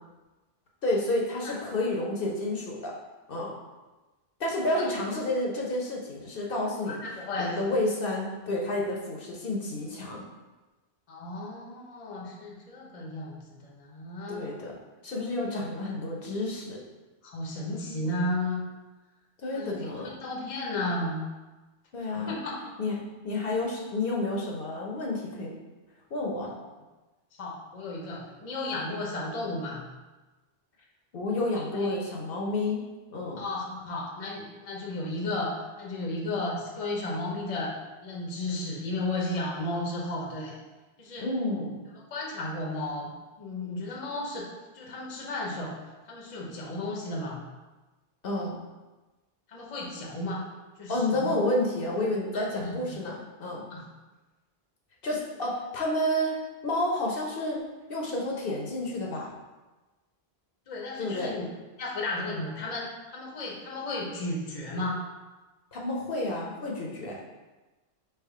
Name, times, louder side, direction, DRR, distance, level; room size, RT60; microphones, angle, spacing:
voice 1, 0.8-2.9 3.3-3.5 4.4-7.0 7.4-10.2 14.3-14.8 15.0-16.8 19.4-20.1 21.9-22.4 22.8-23.0 23.2-25.6 26.1-26.5 31.1-32.8 33.1-33.4 41.2-41.8 48.2-48.5 50.9-53.1 53.4-53.6 55.0-57.6 57.9-59.3 61.0-61.4 65.7-67.2, left 1 dB, 65° left, -2 dB, 0.9 m, -30 dB
voice 2, 6.9-7.6 11.1-14.5 17.2-18.6 19.5-21.3 22.3-22.7 27.3-29.8 31.6-32.0 33.4-37.7 38.0-40.6 41.0-41.3 42.1-43.1 43.4-44.5 44.7-47.4 49.5-50.5 50.8-51.3 52.3-53.0 53.7-53.9 60.7-61.4 61.8-65.0, left 2 dB, 40° left, -2 dB, 0.7 m, -34 dB
3.5 x 3.0 x 4.7 m, 1.2 s
omnidirectional pair, 1.0 m